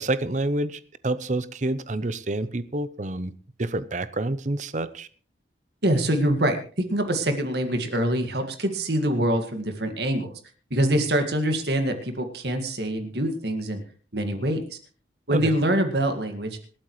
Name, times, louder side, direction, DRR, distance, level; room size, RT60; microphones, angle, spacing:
voice 1, 0.0-3.3 3.6-5.1 15.3-15.5, right 2 dB, 40° right, 14 dB, 0.7 m, -28 dB
voice 2, 5.8-6.6 6.9-10.3 10.7-13.8 14.1-14.6 15.3-16.6, right 1 dB, 65° right, 6 dB, 2.0 m, -24 dB
26.5 x 8.8 x 3.2 m, 0.41 s
head